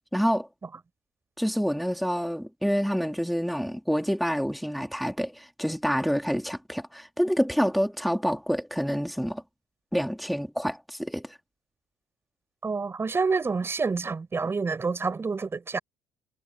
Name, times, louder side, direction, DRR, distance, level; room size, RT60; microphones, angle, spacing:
voice 1, 0.1-0.5 1.4-9.4 9.9-11.3, equal, ahead, 3.5 m, -27 dB
voice 2, 12.6-15.8, right 4 dB, 30° right, 5.7 m, -28 dB
supercardioid pair, 75°, 8 cm